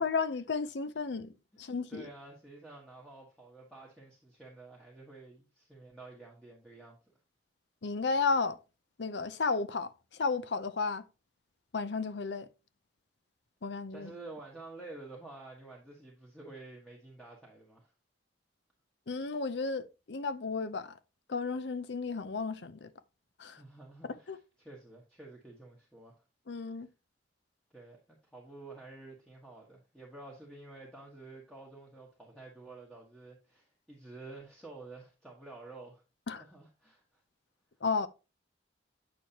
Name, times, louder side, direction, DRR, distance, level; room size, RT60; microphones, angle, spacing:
voice 1, 0.0-2.1 7.8-8.6 9.0-11.0 11.7-12.5 13.6-14.1 19.1-21.0 21.3-22.9 23.4-23.6 24.0-24.4 26.5-26.9 36.3-36.4 37.8-38.1, left 4 dB, 65° left, 0.6 m, -33 dB
voice 2, 1.9-7.0 13.9-17.9 23.4-26.1 27.7-36.0 36.4-37.2, right 2 dB, 5° left, 1.4 m, -50 dB
8.6 x 6.4 x 2.8 m
head